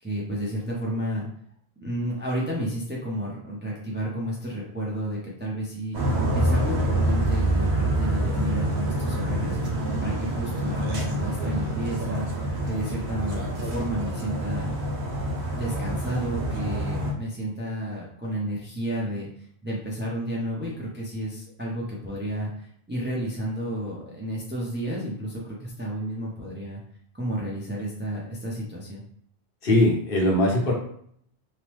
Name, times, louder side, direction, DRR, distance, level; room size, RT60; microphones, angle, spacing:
voice 1, 0.0-1.3 1.8-6.0 6.3-9.6 10.0-14.7 15.5-19.3 19.6-26.8 27.1-29.0, right 1 dB, 15° right, -4 dB, 0.5 m, -31 dB
sound 1, 5.9-17.1, right 1 dB, 85° right, 1.0 m, -26 dB
voice 2, 29.6-30.7, left 1 dB, 60° left, -1 dB, 0.9 m, -20 dB
2.9 x 2.0 x 3.1 m, 0.65 s
omnidirectional pair, 1.1 m